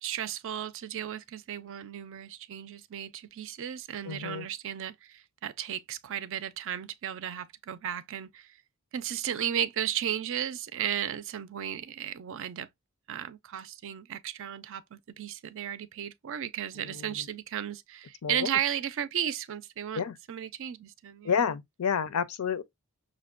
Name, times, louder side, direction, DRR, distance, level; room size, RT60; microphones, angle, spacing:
voice 1, 0.0-8.5 8.9-12.7 13.1-21.3, right 10 dB, 60° right, 0.4 m, -34 dB
voice 2, 4.1-4.5 16.8-17.2 18.2-18.5 19.9-20.1 21.2-22.6, left 7 dB, 80° left, 0.5 m, -30 dB
6.0 x 2.1 x 2.3 m
head